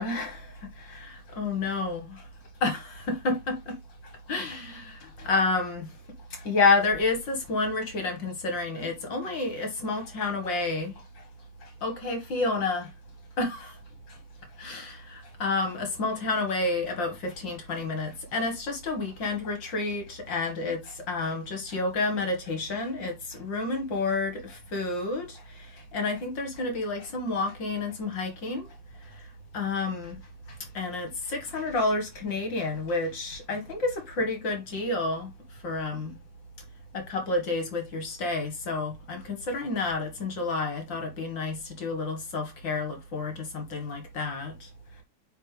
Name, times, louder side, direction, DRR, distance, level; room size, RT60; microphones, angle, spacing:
voice 1, 0.0-2.3 2.6-6.0 6.3-11.3 11.6-12.9 13.4-13.8 14.1-14.2 14.6-30.2 30.5-36.2 36.9-44.7 45.0-45.1, left 3 dB, 60° left, 2.4 m, -30 dB
9.2 x 4.0 x 3.3 m
omnidirectional pair, 2.3 m